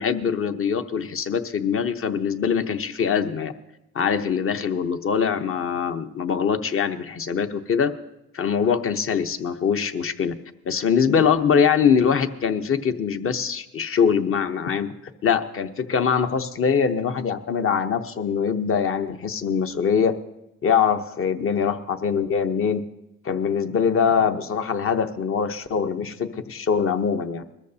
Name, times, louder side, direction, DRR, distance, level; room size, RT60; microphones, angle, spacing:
voice 1, 0.0-3.5 3.9-7.9 8.3-10.3 10.6-14.9 15.2-20.2 20.6-22.8 23.2-27.4, left 6 dB, 45° left, 9 dB, 0.9 m, -23 dB
21.0 x 13.5 x 2.8 m, 0.91 s
cardioid pair, 90°, 30 cm